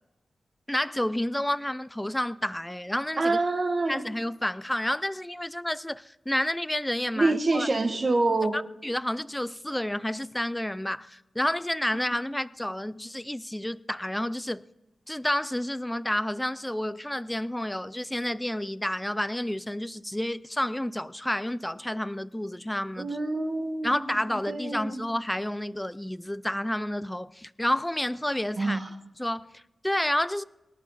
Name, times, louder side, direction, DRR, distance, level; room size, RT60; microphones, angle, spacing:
voice 1, 0.7-3.4 3.9-7.7 8.5-14.6 15.1-23.2 23.8-28.8 29.2-30.4, left 1 dB, 10° left, 0.4 m, -30 dB
voice 2, 3.2-4.0 7.2-8.6 12.1-12.2 23.0-24.0 24.5-25.1 28.6-28.9, right 2 dB, 40° right, 1.4 m, -26 dB
18.5 x 11.5 x 4.1 m
wide cardioid pair, 95°, 0 cm